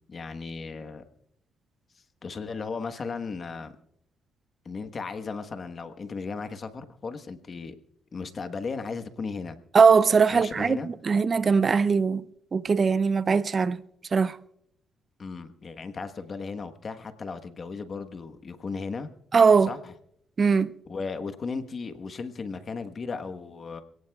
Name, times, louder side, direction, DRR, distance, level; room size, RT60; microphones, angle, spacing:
voice 1, 0.1-1.1 2.2-3.7 4.6-7.8 8.1-9.6 10.3-10.9 15.2-19.1 19.7-19.9 20.8-23.8, left 4 dB, 40° left, 1.3 m, -36 dB
voice 2, 9.7-12.2 12.5-13.8 14.1-14.4 19.3-19.7 20.4-20.7, right 5 dB, 40° right, 0.5 m, -20 dB
27.0 x 17.5 x 2.4 m
cardioid pair, 90°, 0 cm